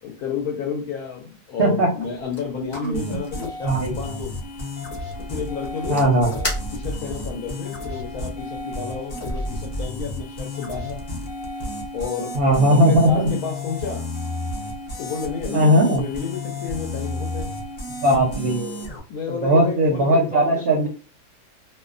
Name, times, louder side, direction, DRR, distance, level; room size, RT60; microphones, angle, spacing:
voice 1, 0.0-4.3 5.2-11.0 11.9-14.1 15.0-17.5 19.1-20.9, left 6 dB, 80° left, 1.0 m, -31 dB
voice 2, 1.6-1.9 2.6-3.2 3.6-3.9 5.9-6.3 12.3-13.3 15.5-16.0 18.0-18.9 19.4-20.9, right 1 dB, 60° right, 0.6 m, -18 dB
sound 1, 2.0-7.2, left 1 dB, 20° left, 0.9 m, -38 dB
sound 2, 2.9-19.0, left 1 dB, 50° left, 0.6 m, -32 dB
2.6 x 2.1 x 2.4 m
omnidirectional pair, 1.6 m